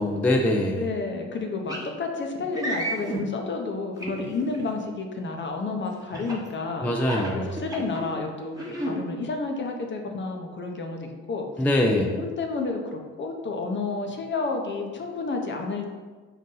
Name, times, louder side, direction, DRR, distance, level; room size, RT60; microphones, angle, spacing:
voice 1, 0.0-0.9 6.8-7.6 11.6-12.1, left 1 dB, 5° left, 2 dB, 0.3 m, -23 dB
voice 2, 0.8-6.9 7.1-11.5 11.9-15.9, left 3 dB, 40° left, 3 dB, 0.6 m, -31 dB
sound 1, 1.7-1.9 2.5-3.2 4.0-4.6 6.1-6.5 7.0-8.1 8.5-8.9, right 1 dB, 10° right, 0.9 m, -31 dB
4.0 x 2.6 x 3.8 m, 1.4 s
cardioid pair, 90°, 30 cm